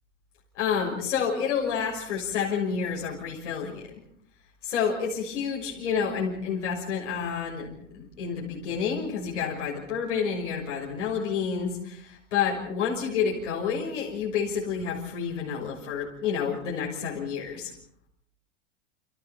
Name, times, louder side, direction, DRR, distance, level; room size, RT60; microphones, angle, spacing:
voice 1, 0.5-3.9 4.6-17.7, left 6 dB, 75° left, -2 dB, 6.3 m, -29 dB
29.5 x 26.0 x 4.4 m, 0.70 s
hypercardioid pair, 100°, 36 cm